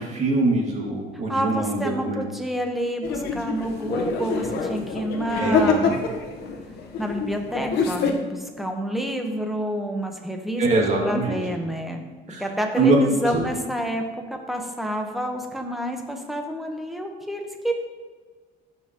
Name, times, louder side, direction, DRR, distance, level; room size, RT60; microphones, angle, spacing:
voice 1, 0.0-2.2 5.4-6.0 10.6-11.4 12.3-12.5 12.8-13.0 13.2-13.4, right 3 dB, 45° right, -1 dB, 2.3 m, -23 dB
voice 2, 1.3-6.0 7.0-12.0 12.4-14.0 14.3-17.8, equal, ahead, 3 dB, 1.2 m, -28 dB
wedding guests, 3.0-8.1, left 5 dB, 75° left, 1.2 m, -26 dB
14.0 x 5.7 x 3.0 m, 1.4 s
cardioid pair, 110°, 17 cm